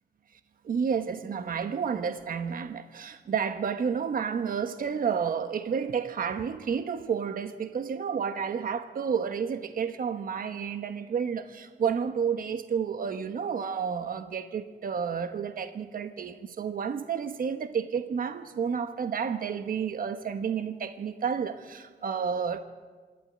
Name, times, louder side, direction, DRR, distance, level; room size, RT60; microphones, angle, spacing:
voice 1, 0.6-22.6, right 6 dB, 50° right, 9 dB, 1.3 m, -31 dB
26.0 x 12.5 x 9.9 m, 1.4 s
wide cardioid pair, 140°, 18 cm